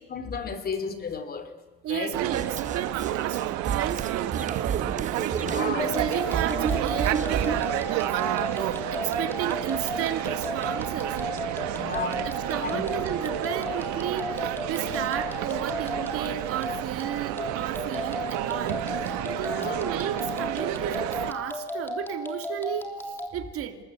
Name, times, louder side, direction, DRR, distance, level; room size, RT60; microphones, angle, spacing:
voice 1, 0.1-1.5 1.9-2.2 5.4-5.9 11.7-12.3 12.6-12.8 19.4-19.8, left 5 dB, 30° left, 10 dB, 2.7 m, -33 dB
voice 2, 1.8-5.0 5.5-11.2 12.2-18.8 19.3-23.8, right 10 dB, 45° right, 7 dB, 2.5 m, -33 dB
sound 1, 2.1-21.3, right 13 dB, 70° right, 1.6 m, -31 dB
sound 2, 2.3-7.7, right 6 dB, 25° right, 0.9 m, -31 dB
sound 3, 5.8-23.3, left 1 dB, 5° left, 3.2 m, -34 dB
27.0 x 20.5 x 8.4 m, 1.2 s
cardioid pair, 145°, 31 cm